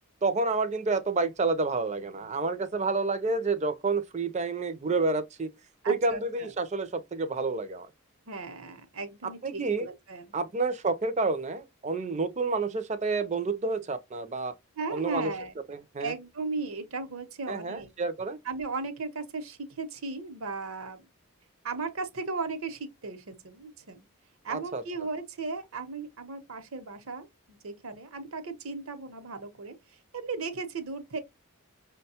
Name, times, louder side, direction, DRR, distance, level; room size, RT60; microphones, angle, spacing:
voice 1, 0.2-5.5 5.9-7.9 9.4-9.9 10.3-14.5 14.9-15.3 15.7-16.1 17.5-18.4 24.5-24.8, right 3 dB, 30° right, 0.5 m, -29 dB
voice 2, 5.8-6.5 8.3-10.4 14.8-15.5 16.0-17.9 18.4-21.0 21.6-24.1 24.4-31.2, right 4 dB, 65° right, 0.8 m, -36 dB
5.9 x 2.2 x 2.8 m
head